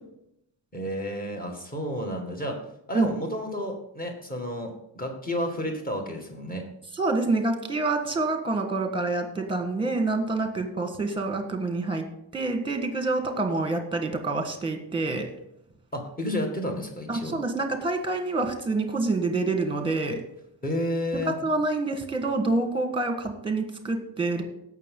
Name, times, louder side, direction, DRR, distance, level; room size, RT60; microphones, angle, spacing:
voice 1, 0.7-2.6 2.9-6.7 15.9-17.4 20.6-21.3, equal, 20° left, 1 dB, 1.9 m, -31 dB
voice 2, 6.9-12.0 12.3-15.3 17.1-20.2 21.2-24.4, right 3 dB, 10° right, 5 dB, 1.5 m, -27 dB
16.5 x 6.2 x 3.8 m, 0.80 s
wide cardioid pair, 175°, 44 cm